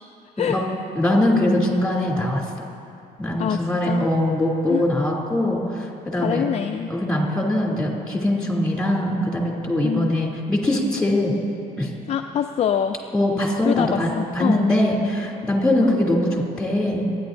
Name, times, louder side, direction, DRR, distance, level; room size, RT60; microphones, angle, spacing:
voice 1, 0.9-2.7 3.2-6.5 6.9-11.3 11.8-11.9 13.1-17.2, left 1 dB, 5° left, -2 dB, 2.8 m, -22 dB
voice 2, 6.2-6.9 9.8-10.1 12.1-13.0 13.6-14.7 15.8-15.9, left 9 dB, 40° left, 5 dB, 0.4 m, -24 dB
26.5 x 10.0 x 2.6 m, 2.6 s
cardioid pair, 110°, 17 cm